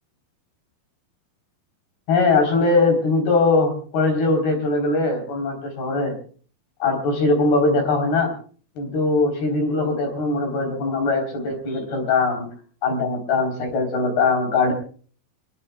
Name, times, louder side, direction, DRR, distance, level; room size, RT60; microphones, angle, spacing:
voice 1, 2.1-6.2 6.8-8.3 8.8-12.5 12.8-14.7, left 3 dB, 75° left, 4 dB, 5.8 m, -21 dB
26.5 x 21.5 x 2.3 m, 0.42 s
omnidirectional pair, 4.4 m